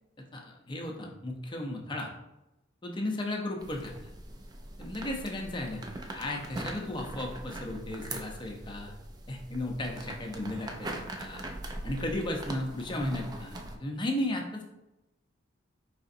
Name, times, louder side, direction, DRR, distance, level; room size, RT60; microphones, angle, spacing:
voice 1, 0.3-2.1 2.8-4.1 4.8-8.9 9.3-10.9 11.2-11.4 11.8-14.6, left 1 dB, 25° left, 1 dB, 0.6 m, -35 dB
sound 1, 3.6-13.8, right 1 dB, 20° right, 0.4 m, -41 dB
4.9 x 3.8 x 2.6 m, 0.93 s
head